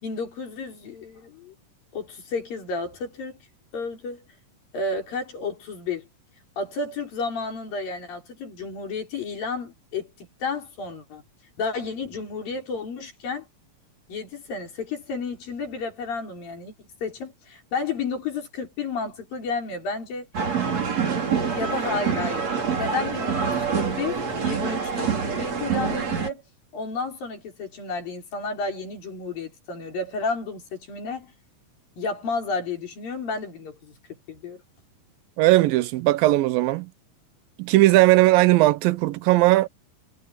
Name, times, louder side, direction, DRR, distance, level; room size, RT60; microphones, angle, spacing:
voice 1, 0.0-1.6 1.9-3.4 3.7-4.2 4.7-6.1 6.6-11.2 11.6-13.5 14.1-16.7 17.0-20.3 21.5-22.4 22.8-26.4 26.7-31.3 32.0-34.0 34.3-34.6, left 4 dB, 80° left, 6.9 m, -31 dB
sound 1, 20.3-26.3, right 6 dB, 50° right, 5.5 m, -26 dB
voice 2, 35.4-36.9 37.6-39.7, right 17 dB, 90° right, 2.6 m, -18 dB
omnidirectional pair, 4.0 m